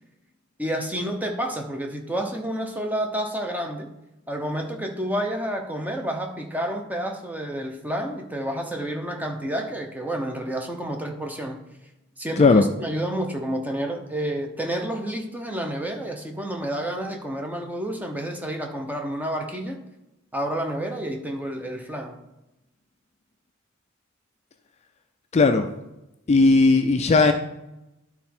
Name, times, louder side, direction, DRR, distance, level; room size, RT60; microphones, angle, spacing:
voice 1, 0.6-3.9 4.3-11.6 12.2-19.8 20.3-22.2, right 1 dB, 10° right, 3 dB, 1.0 m, -29 dB
voice 2, 25.3-25.7 26.3-27.3, left 3 dB, 35° left, 7 dB, 0.4 m, -16 dB
11.5 x 4.1 x 4.4 m, 0.93 s
head